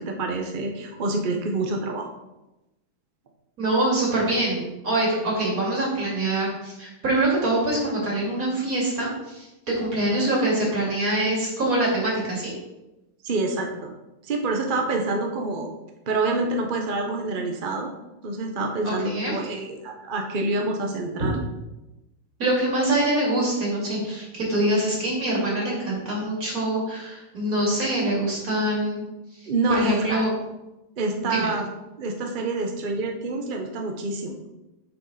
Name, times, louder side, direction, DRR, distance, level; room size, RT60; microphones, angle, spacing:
voice 1, 0.0-2.1 13.2-13.9 14.2-15.7 16.1-17.9 18.2-21.4 29.5-30.2 31.0-31.6 32.0-34.4, right 2 dB, 60° right, 2 dB, 0.5 m, -27 dB
voice 2, 3.6-12.5 18.8-19.3 22.4-29.0 29.3-29.5 29.8-30.3 31.2-31.5, right 1 dB, 40° right, -4 dB, 2.9 m, -24 dB
7.4 x 6.3 x 4.1 m, 0.97 s
omnidirectional pair, 2.3 m